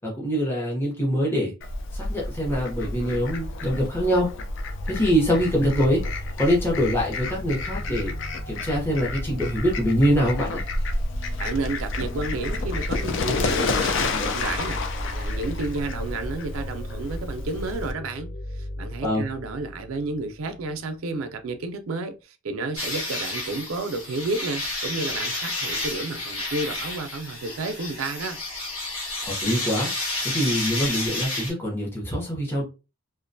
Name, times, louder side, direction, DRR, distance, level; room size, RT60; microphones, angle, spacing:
voice 1, 0.0-1.5 1.9-4.3 4.9-6.0 6.4-8.1 8.5-10.6 19.0-19.2 29.2-29.9 30.2-32.6, equal, 10° left, 0.6 m, -24 dB
Fowl, 1.6-17.9, left 2 dB, 60° left, 0.4 m, -30 dB
sound 1, 4.6-20.9, left 1 dB, 30° left, 1.0 m, -38 dB
voice 2, 11.4-28.4, right 3 dB, 75° right, 0.4 m, -31 dB
sound 2, 22.8-31.5, left 2 dB, 80° left, 1.3 m, -30 dB
2.4 x 2.1 x 2.5 m
head